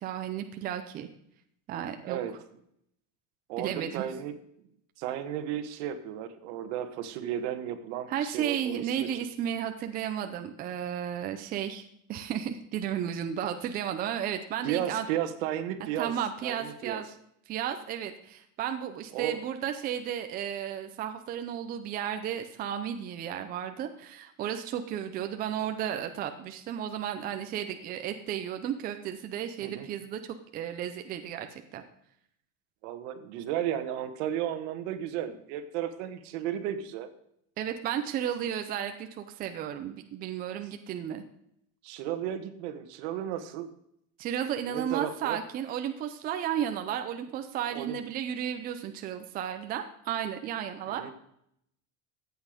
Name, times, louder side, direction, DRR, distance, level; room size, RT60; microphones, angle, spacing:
voice 1, 0.0-1.1 1.7-2.2 3.6-4.0 8.1-15.0 16.0-17.1 17.5-31.8 37.6-41.2 44.2-51.1, right 9 dB, 25° right, 7 dB, 0.6 m, -33 dB
voice 2, 2.0-2.3 3.5-4.3 5.0-9.2 14.6-16.1 16.4-17.0 19.1-19.4 29.6-29.9 32.8-37.1 41.8-43.7 44.7-45.4 47.7-48.0 50.9-51.1, right 10 dB, 65° right, 10 dB, 1.6 m, -34 dB
14.5 x 8.4 x 5.1 m, 0.73 s
cardioid pair, 180°, 36 cm